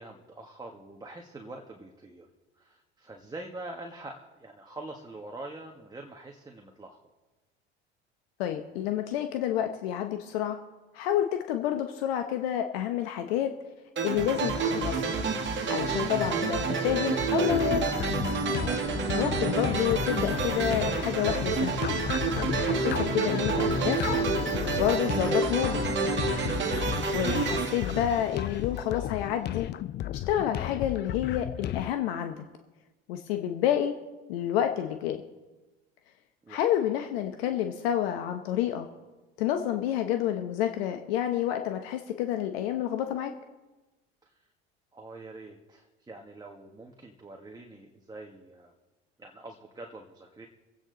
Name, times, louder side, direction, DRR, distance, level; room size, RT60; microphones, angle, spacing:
voice 1, 0.0-2.3 2.6-7.0 18.6-18.9 36.4-36.7 44.2-44.3 44.9-48.7 49.2-50.5, right 2 dB, 15° right, 2 dB, 1.6 m, -45 dB
voice 2, 8.4-10.6 10.9-13.5 14.0-15.0 15.7-17.8 19.1-21.8 22.6-24.0 24.6-25.8 27.1-29.7 30.1-32.4 33.1-33.9 34.3-35.2 36.5-38.9 39.4-43.3, left 10 dB, 70° left, 6 dB, 1.1 m, -29 dB
sound 1, 14.0-28.8, right 4 dB, 35° right, 2.0 m, -29 dB
sound 2, 17.5-31.9, left 12 dB, 35° left, 0.4 m, -34 dB
24.5 x 8.8 x 4.0 m, 1.1 s
hypercardioid pair, 80°, 31 cm